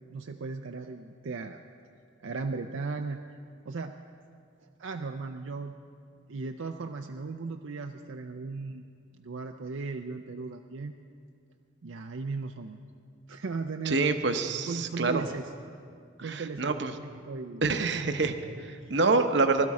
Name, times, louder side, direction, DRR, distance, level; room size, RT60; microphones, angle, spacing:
voice 1, 0.1-1.6 2.2-3.2 3.7-3.9 4.8-5.8 6.3-8.9 9.2-10.9 11.8-12.8 13.3-14.2 14.7-15.5 16.2-18.9, right 4 dB, 80° right, 5 dB, 0.5 m, -37 dB
voice 2, 13.9-15.3 16.2-17.0 17.6-18.3 18.6-19.7, right 3 dB, 65° right, 8 dB, 0.9 m, -26 dB
20.5 x 12.5 x 4.8 m, 2.3 s
head